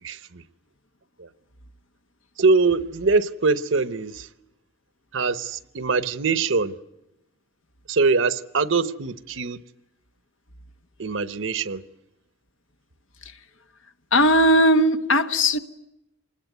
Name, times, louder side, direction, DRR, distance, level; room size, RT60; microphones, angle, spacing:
voice 1, 0.0-0.4 1.2-1.3 2.4-4.3 5.1-6.7 7.9-9.6 11.0-11.8, right 4 dB, 75° right, 1.0 m, -23 dB
voice 2, 14.1-15.6, equal, 80° left, 1.3 m, -18 dB
25.5 x 20.5 x 9.3 m
head